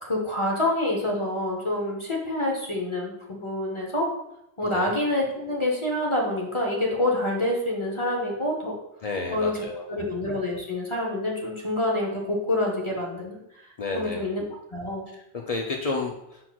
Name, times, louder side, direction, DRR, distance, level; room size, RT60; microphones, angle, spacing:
voice 1, 0.0-4.1 4.6-8.7 9.3-9.5 9.9-13.4 13.9-14.4 14.7-15.0, left 1 dB, 30° left, -2 dB, 0.7 m, -27 dB
voice 2, 4.6-4.9 9.0-9.8 13.8-14.3 15.1-16.4, left 3 dB, 70° left, 1 dB, 0.3 m, -31 dB
5.9 x 3.9 x 2.2 m, 0.84 s
omnidirectional pair, 1.2 m